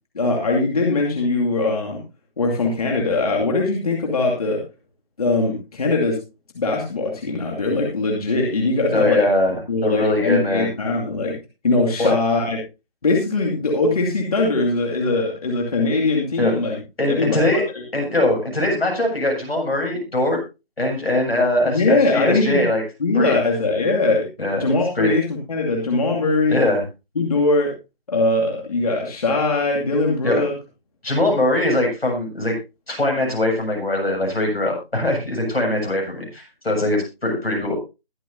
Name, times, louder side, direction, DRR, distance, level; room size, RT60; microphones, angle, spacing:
voice 1, 0.1-2.0 2.4-4.6 5.2-6.2 6.5-9.3 9.7-11.4 11.6-12.6 13.0-16.8 17.1-17.4 21.7-22.6 23.0-24.3 24.6-26.6 27.2-27.7 28.1-30.5, left 3 dB, 40° left, 0 dB, 2.6 m, -21 dB
voice 2, 8.9-10.7 12.0-12.1 16.4-16.6 17.0-17.6 17.9-20.4 20.8-22.8 23.1-23.4 24.4-24.6 25.0-25.1 26.5-26.8 30.2-30.4 31.0-32.6 32.9-37.7, left 1 dB, 80° left, 1 dB, 7.3 m, -21 dB
21.5 x 7.6 x 2.8 m, 0.28 s
figure-of-eight pair, 165°, 30 cm